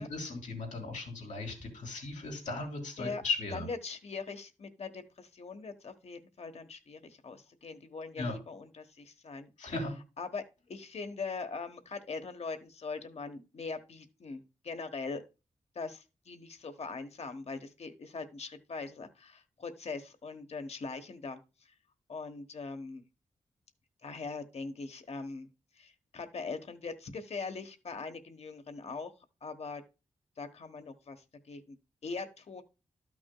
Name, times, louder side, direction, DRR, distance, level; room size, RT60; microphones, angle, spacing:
voice 1, 0.0-3.7 8.2-8.4 9.6-9.9, left 3 dB, 90° left, 2 dB, 3.2 m, -37 dB
voice 2, 3.5-9.5 10.2-15.2 15.7-21.4 22.1-23.0 24.0-25.5 25.7-29.1 29.4-29.8 30.4-31.8 32.0-32.6, left 4 dB, 60° left, 8 dB, 1.2 m, -41 dB
13.0 x 6.0 x 2.2 m, 0.29 s
cardioid pair, 65°, 13 cm